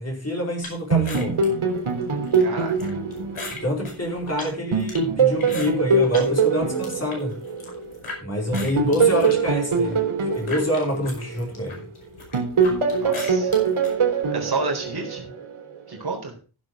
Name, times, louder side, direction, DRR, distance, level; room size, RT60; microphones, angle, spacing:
voice 1, 0.0-1.4 3.5-7.4 8.2-10.0 10.3-11.9, left 1 dB, 30° left, 0 dB, 4.6 m, -27 dB
sound 1, 0.6-6.3 6.7-8.2 8.5-13.9, left 3 dB, 75° left, 5.3 m, -39 dB
sound 2, 0.9-4.2 4.7-8.0 8.5-11.8 12.3-15.6, right 5 dB, 80° right, 3.7 m, -23 dB
voice 2, 2.4-2.8 13.0-13.5 14.3-15.3 15.9-16.3, right 3 dB, 50° right, 2 dB, 4.2 m, -30 dB
15.5 x 7.8 x 3.7 m, 0.34 s
wide cardioid pair, 120°, 49 cm